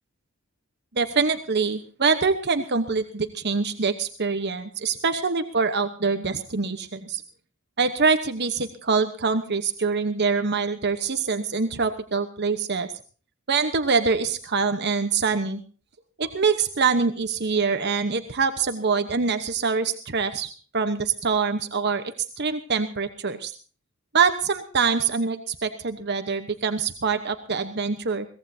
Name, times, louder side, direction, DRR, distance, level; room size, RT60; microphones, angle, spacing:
voice 1, 0.9-7.2 7.8-12.9 13.5-15.6 16.2-22.0 22.4-23.5 24.1-28.3, right 5 dB, 50° right, 8 dB, 1.1 m, -24 dB
22.5 x 18.0 x 2.8 m, 0.39 s
head